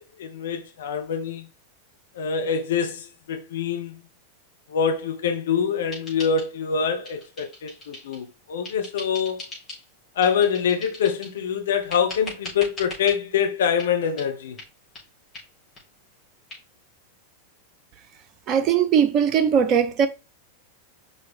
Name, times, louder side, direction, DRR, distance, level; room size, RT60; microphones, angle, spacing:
voice 1, 0.2-1.5 2.1-4.0 4.7-9.4 10.1-14.6, left 7 dB, 60° left, 1.0 m, -25 dB
sound 1, 5.9-6.8 7.0-8.2 8.6-9.8 10.2-11.4 11.9-13.2 13.8-13.9 14.2-14.3 14.6-14.7 14.9-15.0 15.3-15.5 15.7-15.8 16.1-16.2 16.5-16.6, left 2 dB, 20° left, 4.2 m, -40 dB
voice 2, 18.5-20.1, right 8 dB, 35° right, 0.9 m, -19 dB
5.7 x 5.5 x 3.6 m
figure-of-eight pair, 90°, 0 cm